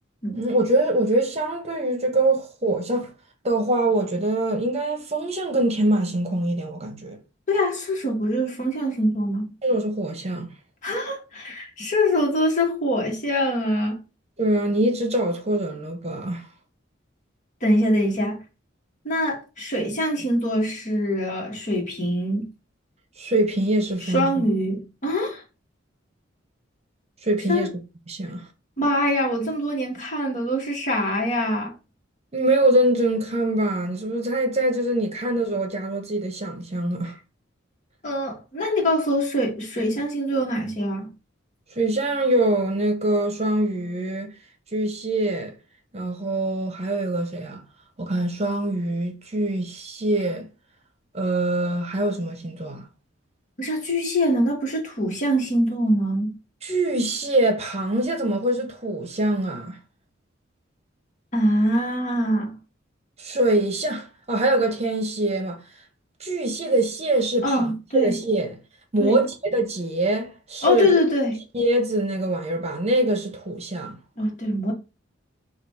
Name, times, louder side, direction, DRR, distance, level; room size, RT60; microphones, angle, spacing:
voice 1, 0.3-3.1 3.4-7.2 9.6-10.5 14.4-16.4 23.2-24.4 27.2-27.7 28.1-28.4 32.3-37.1 41.7-44.3 44.7-45.5 45.9-47.6 48.0-50.4 51.1-52.8 56.6-59.8 63.2-65.6 66.2-68.5 68.9-70.9 71.5-74.0, right 1 dB, 35° right, 1.0 m, -24 dB
voice 2, 7.5-9.5 10.8-14.0 17.6-18.4 19.0-22.5 24.0-25.4 27.5-27.7 28.8-31.7 38.0-41.1 53.6-56.3 61.3-62.5 67.4-68.2 69.0-69.2 70.6-71.4 74.2-74.7, equal, 40° left, 1.4 m, -24 dB
4.0 x 2.5 x 4.2 m
head